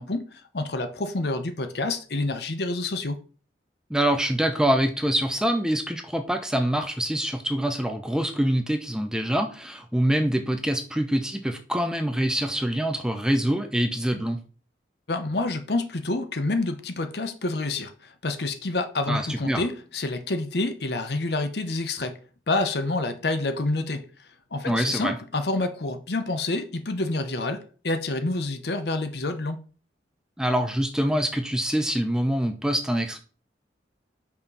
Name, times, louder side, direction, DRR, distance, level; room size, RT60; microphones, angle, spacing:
voice 1, 0.0-3.2 15.1-22.2 22.5-24.1 24.5-29.6, left 2 dB, 60° left, 0.8 m, -28 dB
voice 2, 3.9-14.4 19.1-19.6 24.7-25.2 30.4-33.2, right 1 dB, 5° right, 0.7 m, -25 dB
5.6 x 4.4 x 5.4 m
head